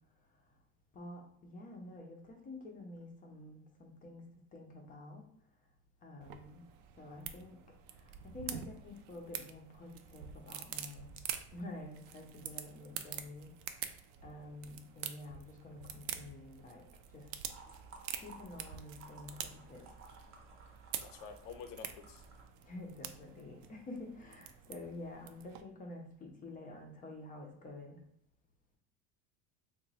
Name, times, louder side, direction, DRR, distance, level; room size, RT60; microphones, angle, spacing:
voice 1, 0.9-4.2 4.5-5.2 6.0-6.6 7.0-7.6 8.0-11.1 11.5-13.5 14.2-16.8 17.1-17.3 18.2-19.9 22.7-28.0, left 2 dB, 20° left, 1 dB, 0.5 m, -49 dB
sound 1, 6.2-25.6, right 10 dB, 70° right, 0.5 m, -47 dB
sound 2, 17.5-22.5, right 4 dB, 35° right, 0.7 m, -56 dB
voice 2, 21.1-22.2, left 6 dB, 65° left, 7 dB, 0.7 m, -48 dB
2.9 x 2.2 x 4.0 m, 0.69 s
cardioid pair, 145°, 38 cm